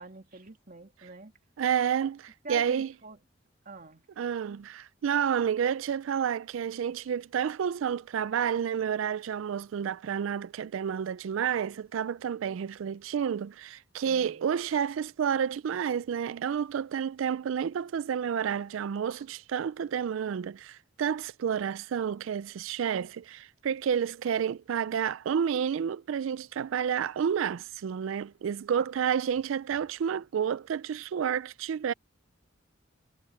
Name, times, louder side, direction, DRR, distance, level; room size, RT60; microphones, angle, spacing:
voice 1, 0.0-1.3 2.4-3.2 3.6-4.1 14.0-14.4 28.8-28.9, right 3 dB, 45° right, 2.6 m, -45 dB
voice 2, 1.6-2.9 4.2-31.9, right 8 dB, 75° right, 0.3 m, -30 dB
head